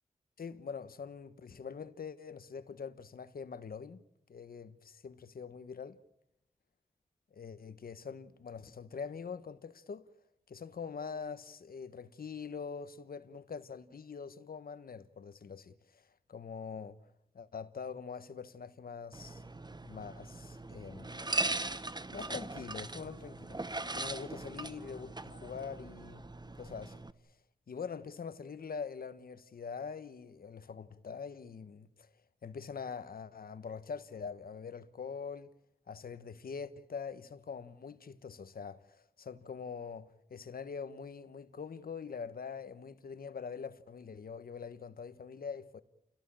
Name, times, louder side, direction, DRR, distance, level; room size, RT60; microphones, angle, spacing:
voice 1, 0.4-4.0 4.3-6.0 7.3-10.0 10.5-16.0 16.3-17.0 17.3-19.4 19.8-21.3 22.1-23.6 23.9-26.3 26.6-27.0 27.7-32.1 32.4-35.5 35.9-45.8, left 6 dB, 85° left, 1.3 m, -44 dB
sound 1, 19.1-27.1, right 2 dB, 30° right, 1.2 m, -40 dB
28.5 x 17.5 x 8.9 m
cardioid pair, 45°, 15 cm